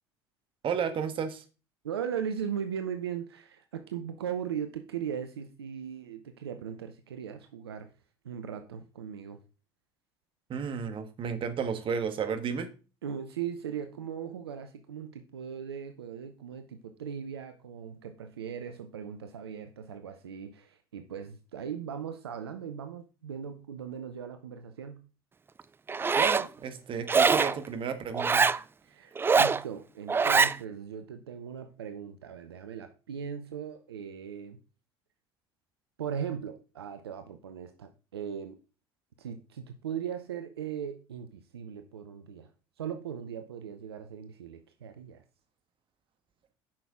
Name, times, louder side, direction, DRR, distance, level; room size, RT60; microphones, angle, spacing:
voice 1, 0.6-1.4 10.5-12.7 26.2-28.4, right 7 dB, 40° right, 8 dB, 1.4 m, -32 dB
voice 2, 1.8-7.9 8.2-9.4 13.0-25.0 28.8-34.6 36.0-38.6 39.2-42.5 42.8-45.2, right 8 dB, 80° right, 8 dB, 0.7 m, -38 dB
Zipper (clothing), 25.9-26.5 27.1-27.6 28.1-28.6 29.2-29.6 30.1-30.6, right 5 dB, 15° right, 0.4 m, -23 dB
8.7 x 5.9 x 3.6 m, 0.34 s
figure-of-eight pair, 65°, 13 cm